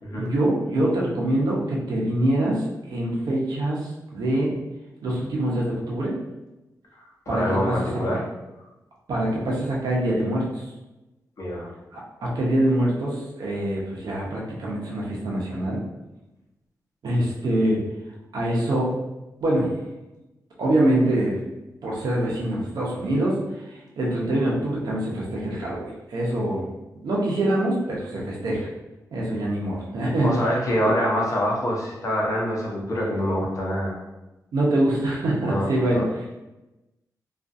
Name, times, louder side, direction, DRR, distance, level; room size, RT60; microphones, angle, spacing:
voice 1, 0.1-4.5 5.0-6.1 7.3-7.8 9.1-10.7 11.9-15.8 17.0-17.8 18.3-19.0 19.4-19.7 20.6-21.4 21.8-23.4 23.7-26.6 27.0-28.7 29.1-30.4 34.5-36.4, right 1 dB, 80° right, -4 dB, 0.7 m, -24 dB
voice 2, 7.3-8.2 11.4-11.7 30.2-34.0 35.5-36.1, equal, 55° left, -3 dB, 0.7 m, -25 dB
2.4 x 2.4 x 2.5 m, 1.0 s
wide cardioid pair, 100°, 7 cm